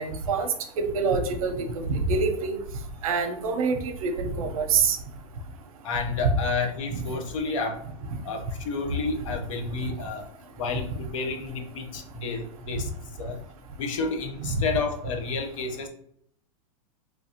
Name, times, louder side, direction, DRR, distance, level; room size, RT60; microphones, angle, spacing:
voice 1, 0.0-2.6 3.0-5.0 6.9-7.0 14.4-14.6, right 4 dB, 75° right, 6 dB, 0.6 m, -26 dB
voice 2, 5.8-7.8 8.2-10.3 10.5-12.9 13.2-13.4 13.8-15.9, left 4 dB, 65° left, 4 dB, 0.7 m, -30 dB
3.1 x 2.5 x 2.8 m, 0.68 s
supercardioid pair, 175°, 18 cm